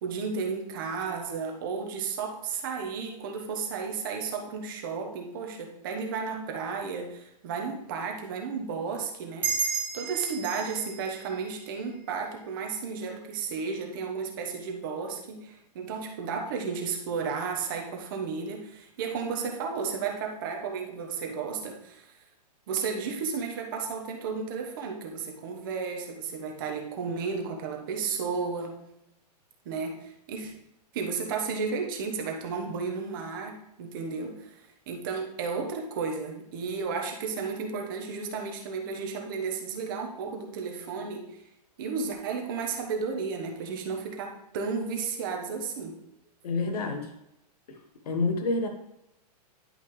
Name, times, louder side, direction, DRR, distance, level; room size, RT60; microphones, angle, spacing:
voice 1, 0.0-22.1 22.7-28.8 29.6-30.5 30.9-41.4 41.8-46.0, right 5 dB, 30° right, 2 dB, 1.1 m, -33 dB
sound 1, 9.4-12.5, right 6 dB, 10° right, 0.9 m, -34 dB
voice 2, 46.4-47.1 47.7-47.8 48.0-48.7, left 3 dB, 70° left, 5 dB, 1.2 m, -28 dB
10.5 x 5.5 x 3.2 m, 0.85 s
hypercardioid pair, 175°, 21 cm